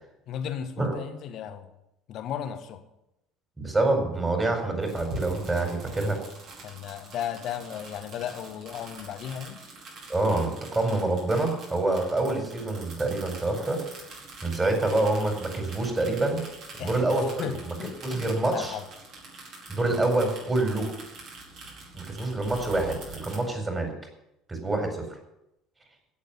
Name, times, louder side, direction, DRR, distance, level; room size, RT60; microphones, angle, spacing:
voice 1, 0.3-1.7 2.1-2.8 6.6-9.6 16.8-17.1 17.4-18.9, left 9 dB, 50° left, 9 dB, 1.6 m, -35 dB
voice 2, 3.6-6.2 10.1-13.8 14.4-16.4 16.8-17.7 18.0-18.7 19.7-20.9 21.9-23.9 24.5-25.0, right 2 dB, 15° right, 3 dB, 4.6 m, -26 dB
sound 1, 4.8-23.4, right 2 dB, 50° right, 5.0 m, -44 dB
16.0 x 7.2 x 8.6 m, 0.85 s
figure-of-eight pair, 60°, 0 cm